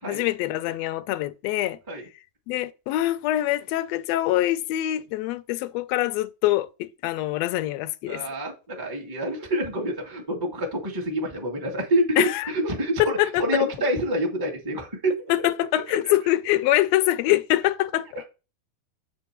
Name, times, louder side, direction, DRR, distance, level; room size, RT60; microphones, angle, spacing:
voice 1, 0.0-1.8 2.5-8.2 12.2-12.5 13.2-13.7 15.3-18.2, left 15 dB, 80° left, 1.5 m, -24 dB
voice 2, 8.1-15.1 18.1-18.2, equal, 20° right, 0.6 m, -27 dB
7.8 x 4.5 x 4.4 m
omnidirectional pair, 3.4 m